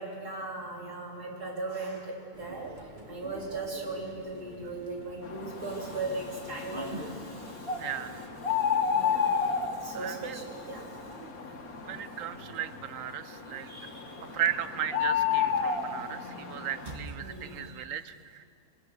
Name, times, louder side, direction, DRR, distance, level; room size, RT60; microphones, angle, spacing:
voice 1, 0.0-2.7 3.1-7.9 8.5-8.6 8.8-10.8 13.7-14.2 17.2-17.8, right 3 dB, 80° right, -2 dB, 4.3 m, -38 dB
sound 1, 2.3-17.7, equal, 30° right, 2.2 m, -48 dB
sound 2, 5.2-17.0, left 6 dB, 65° left, 2.1 m, -32 dB
voice 2, 7.8-8.3 9.9-10.4 11.9-13.7 14.3-18.4, right 9 dB, 60° right, 12 dB, 1.1 m, -36 dB
25.0 x 21.5 x 6.7 m, 2.3 s
omnidirectional pair, 1.7 m